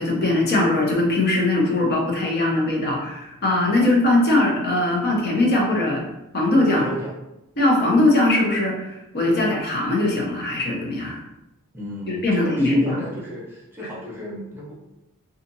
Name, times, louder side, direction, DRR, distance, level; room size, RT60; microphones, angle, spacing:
voice 1, 0.0-6.1 6.3-6.9 7.6-11.2 12.1-13.0, left 2 dB, 50° left, -1 dB, 0.7 m, -20 dB
voice 2, 3.7-4.1 6.7-7.1 11.7-14.7, right 1 dB, 10° right, -5 dB, 0.7 m, -34 dB
2.6 x 2.4 x 2.6 m, 0.91 s
head